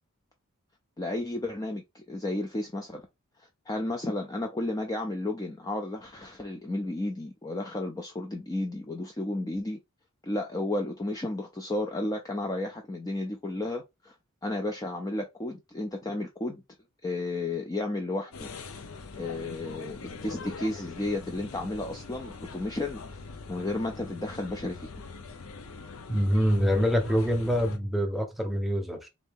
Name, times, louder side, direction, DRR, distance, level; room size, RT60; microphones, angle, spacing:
voice 1, 1.0-3.1 3.7-9.8 10.2-14.2 14.4-16.6 17.0-18.5 19.1-23.0 23.5-24.9, left 2 dB, 15° left, 0.4 m, -33 dB
sound 1, 18.3-27.8, left 4 dB, 65° left, 0.6 m, -42 dB
voice 2, 26.1-29.1, equal, ahead, 0.8 m, -25 dB
4.0 x 2.7 x 3.4 m
head